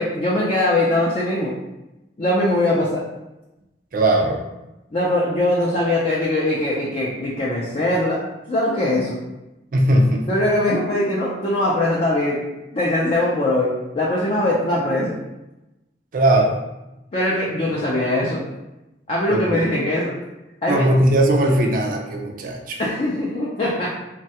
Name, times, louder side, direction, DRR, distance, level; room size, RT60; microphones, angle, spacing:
voice 1, 0.0-1.5 2.2-3.0 4.9-8.2 8.5-9.2 10.3-12.5 12.7-15.2 17.1-18.5 19.1-20.1 20.6-20.8 22.8-23.9, left 1 dB, 35° left, -5 dB, 0.4 m, -21 dB
voice 2, 3.9-4.4 9.7-10.3 16.1-16.5 17.6-17.8 19.3-19.6 20.7-22.8, right 1 dB, 50° right, 1 dB, 0.4 m, -19 dB
3.1 x 2.2 x 2.8 m, 0.98 s
head